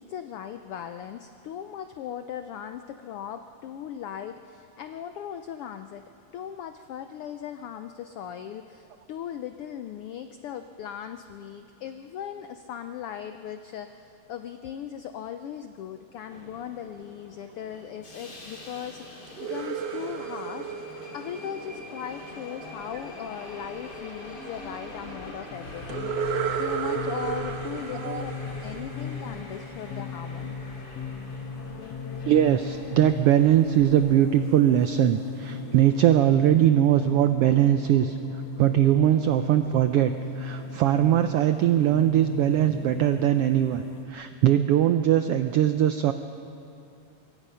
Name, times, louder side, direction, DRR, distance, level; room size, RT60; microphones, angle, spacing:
voice 1, 0.0-20.8 21.1-28.3 28.6-30.6, left 9 dB, 90° left, 8 dB, 1.2 m, -38 dB
Subway metro underground, 16.3-34.2, left 1 dB, 35° left, 3.2 m, -44 dB
sound 1, 19.3-22.2 25.9-29.6, right 7 dB, 65° right, 1.9 m, -33 dB
sound 2, 25.5-44.1, left 5 dB, 65° left, 2.1 m, -37 dB
voice 2, 32.3-38.2 38.6-43.8 44.1-46.1, right 11 dB, 85° right, 9 dB, 1.3 m, -21 dB
25.5 x 22.0 x 5.6 m, 2.6 s
omnidirectional pair, 3.4 m